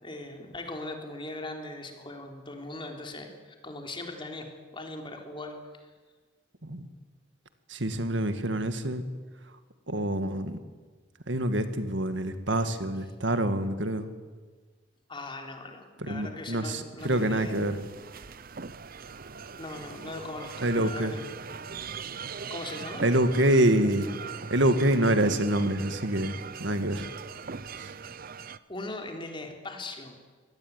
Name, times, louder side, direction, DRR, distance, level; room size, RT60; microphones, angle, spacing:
voice 1, 0.0-5.9 15.1-17.6 19.6-21.2 22.5-23.1 28.7-30.2, left 2 dB, 25° left, 3 dB, 3.6 m, -40 dB
voice 2, 7.7-9.1 9.9-10.6 11.3-14.1 16.0-17.8 20.6-21.1 23.0-24.1 24.5-27.1 27.7-27.9, right 1 dB, 70° right, 9 dB, 1.9 m, -26 dB
sound 1, 17.0-28.6, right 5 dB, 50° right, 0.8 m, -41 dB
24.0 x 18.5 x 9.7 m, 1.4 s
head